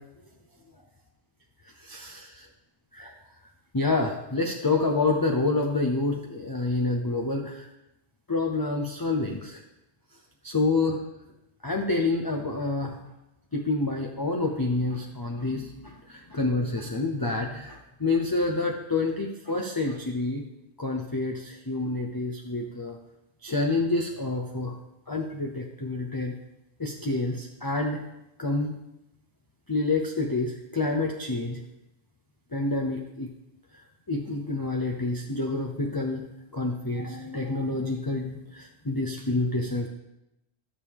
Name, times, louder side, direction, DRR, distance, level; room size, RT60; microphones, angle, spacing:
voice 1, 1.8-2.3 2.9-3.1 3.7-7.7 8.3-9.6 10.4-11.0 11.6-13.0 13.5-20.4 20.8-23.0 23.4-24.8 25.1-26.3 26.8-28.0 28.4-28.7 29.7-31.6 32.5-33.3 34.1-36.3 36.5-39.9, left 3 dB, 25° left, 1 dB, 0.6 m, -28 dB
12.5 x 6.6 x 3.6 m, 0.89 s
omnidirectional pair, 1.2 m